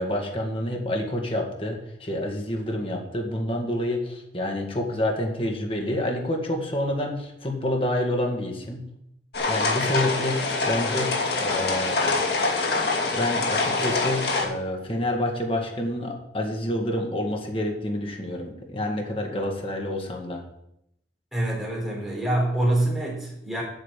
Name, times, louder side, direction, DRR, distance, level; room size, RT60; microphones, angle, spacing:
voice 1, 0.0-8.8 9.5-12.2 13.1-20.4, left 1 dB, 30° left, 1 dB, 1.9 m, -28 dB
sound 1, 9.3-14.5, left 3 dB, 60° left, 2.5 m, -25 dB
voice 2, 21.3-23.6, right 1 dB, ahead, -4 dB, 4.3 m, -25 dB
8.5 x 6.6 x 8.5 m, 0.78 s
head